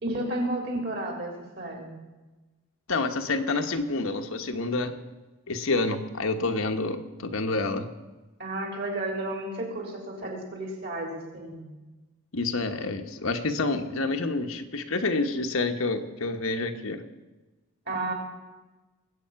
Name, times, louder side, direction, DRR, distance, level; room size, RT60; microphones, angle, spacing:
voice 1, 0.0-1.9 8.4-11.6 17.9-18.1, right 1 dB, 50° right, 1 dB, 3.5 m, -32 dB
voice 2, 2.9-5.0 5.5-7.9 12.3-17.0, left 3 dB, 70° left, 5 dB, 1.1 m, -28 dB
20.5 x 8.4 x 5.8 m, 1.2 s
head